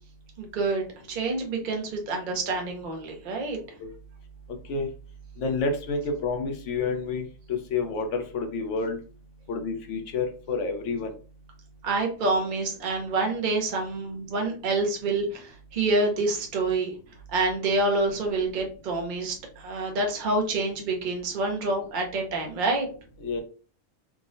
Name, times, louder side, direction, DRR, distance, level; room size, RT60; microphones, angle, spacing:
voice 1, 0.4-3.6 11.8-16.9 17.3-22.9, right 2 dB, 60° right, 2 dB, 0.5 m, -27 dB
voice 2, 5.4-7.2 7.5-9.0 9.5-11.1 23.2-23.4, left 4 dB, 70° left, 4 dB, 0.8 m, -29 dB
3.6 x 2.0 x 2.5 m, 0.39 s
omnidirectional pair, 1.5 m